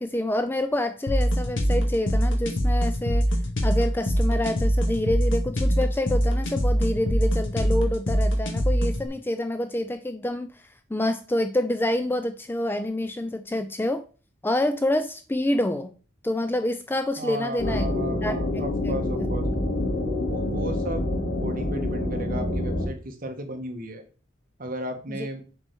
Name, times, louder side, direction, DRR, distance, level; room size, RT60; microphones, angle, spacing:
voice 1, 0.0-3.3 3.6-10.5 10.9-14.0 14.4-15.9 16.2-17.8 18.2-19.0 19.4-19.6 25.1-25.3, left 1 dB, 10° left, 9 dB, 0.4 m, -27 dB
sound 1, 1.1-9.1, equal, 65° left, 1.9 m, -23 dB
voice 2, 17.2-19.5 20.2-21.1 21.4-24.0 24.6-25.4, right 1 dB, 45° right, 5 dB, 1.3 m, -35 dB
sound 2, 17.6-22.9, left 1 dB, 50° left, 2.5 m, -27 dB
7.5 x 4.5 x 4.6 m, 0.37 s
head